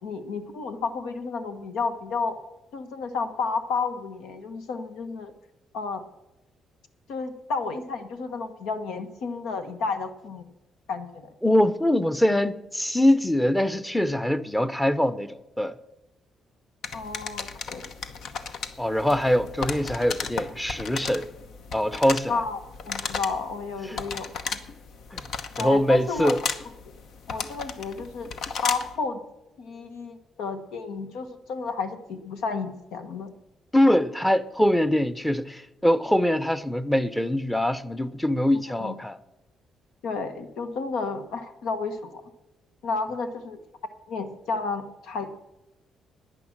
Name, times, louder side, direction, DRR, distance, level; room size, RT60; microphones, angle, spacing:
voice 1, 0.0-2.4 2.7-5.3 5.7-6.0 7.1-10.5 10.9-11.3 16.9-17.8 18.2-18.3 22.3-24.6 25.6-26.3 27.3-28.3 28.6-29.2 29.6-33.3 38.8-38.9 40.0-42.2 42.8-43.6 44.1-45.4, left 4 dB, 85° left, 1.4 m, -31 dB
voice 2, 11.4-15.8 18.8-21.3 21.7-22.4 23.9-24.0 25.1-25.2 25.6-26.4 33.7-39.2, left 1 dB, 5° left, 0.7 m, -23 dB
sound 1, 16.8-29.0, left 5 dB, 70° left, 1.0 m, -35 dB
11.0 x 9.8 x 7.4 m
cardioid pair, 90°, 0 cm